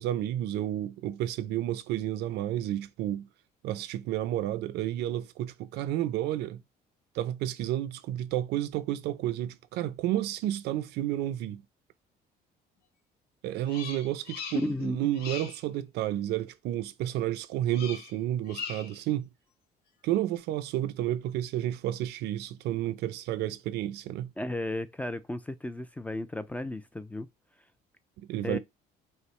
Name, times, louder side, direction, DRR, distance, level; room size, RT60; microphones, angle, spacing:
voice 1, 0.0-3.3 3.6-6.6 7.1-11.6 13.4-19.3 20.0-24.3 28.2-28.6, right 13 dB, 80° right, 0.5 m, -31 dB
Bird vocalization bird call bird song, 13.7-14.8 15.1-15.6 17.7-18.2 18.5-19.0, left 6 dB, 70° left, 1.0 m, -40 dB
voice 2, 14.6-15.0 24.4-27.3 28.4-28.6, left 1 dB, 10° left, 0.3 m, -34 dB
5.4 x 2.1 x 3.2 m
cardioid pair, 110°, 17 cm